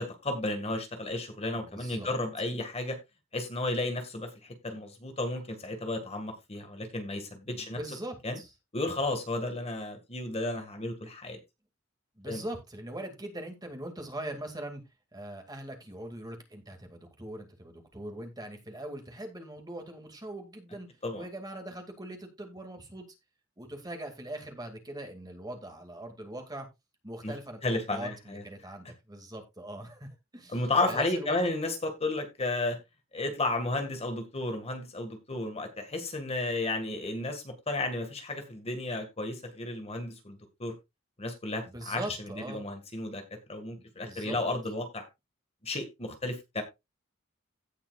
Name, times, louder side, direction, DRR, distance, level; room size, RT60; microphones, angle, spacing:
voice 1, 0.0-3.0 3.3-7.8 8.2-8.4 8.7-11.4 12.3-12.4 21.0-21.2 27.2-27.3 27.6-28.4 30.5-32.8 33.1-40.7 41.2-43.2 43.5-45.1 45.6-46.6, left 2 dB, 30° left, 1.8 m, -33 dB
voice 2, 1.5-2.1 7.5-8.5 12.2-14.8 15.1-23.1 23.6-26.7 27.0-30.6 30.9-31.5 41.7-42.6 43.7-44.4, right 1 dB, 20° right, 2.3 m, -41 dB
17.0 x 5.7 x 2.4 m
head